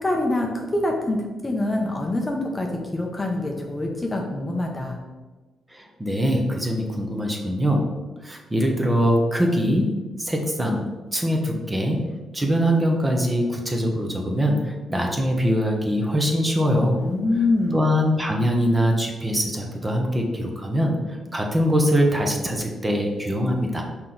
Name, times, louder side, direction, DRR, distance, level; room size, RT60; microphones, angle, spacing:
voice 1, 0.0-5.0 17.0-17.9, left 2 dB, 15° left, 1 dB, 0.7 m, -25 dB
voice 2, 5.7-7.9 8.2-12.1 12.3-17.0 17.7-21.0 21.3-23.8, equal, 15° right, 1 dB, 0.9 m, -23 dB
5.9 x 4.4 x 3.9 m, 1.2 s
cardioid pair, 120°, 0 cm